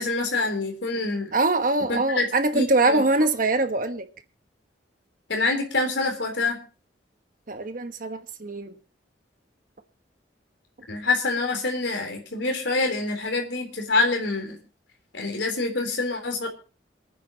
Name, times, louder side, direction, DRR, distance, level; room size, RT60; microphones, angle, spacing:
voice 1, 0.0-1.3 1.9-3.0 5.3-6.6 10.9-14.6 15.1-16.5, left 3 dB, 75° left, 3.7 m, -26 dB
voice 2, 1.3-4.1 7.5-8.7, right 2 dB, 45° right, 1.2 m, -23 dB
27.5 x 9.3 x 2.9 m
head